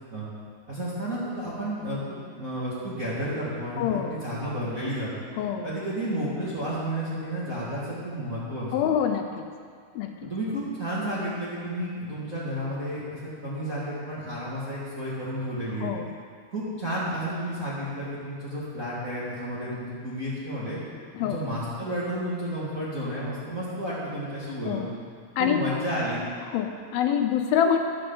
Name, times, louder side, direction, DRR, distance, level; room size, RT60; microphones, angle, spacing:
voice 1, 0.7-5.1 5.6-8.7 10.2-15.9 16.5-20.8 21.2-24.8 25.4-26.2, equal, 40° right, -8 dB, 1.3 m, -31 dB
voice 2, 3.8-4.2 5.4-5.7 8.7-9.4 10.0-10.3 15.8-16.1 21.2-21.4 24.7-24.9 25.4-25.6 26.5-27.8, left 8 dB, 80° left, 5 dB, 2.3 m, -25 dB
12.5 x 11.5 x 3.9 m, 2.1 s
omnidirectional pair, 4.6 m